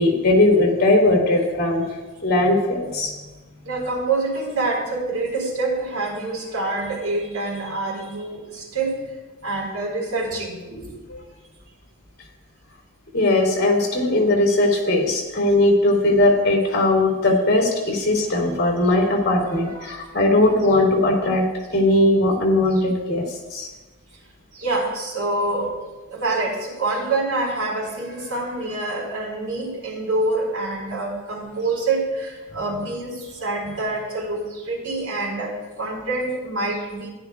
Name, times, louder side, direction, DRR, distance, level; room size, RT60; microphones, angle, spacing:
voice 1, 0.0-1.8 2.2-3.1 11.1-11.2 13.1-21.5 21.7-23.2 23.5-23.7, left 2 dB, 45° left, 0 dB, 2.7 m, -19 dB
voice 2, 3.6-9.0 9.4-11.0 19.7-20.2 24.5-25.7 26.1-37.1, right 2 dB, 90° right, -2 dB, 4.0 m, -26 dB
15.5 x 10.5 x 2.3 m, 1.2 s
head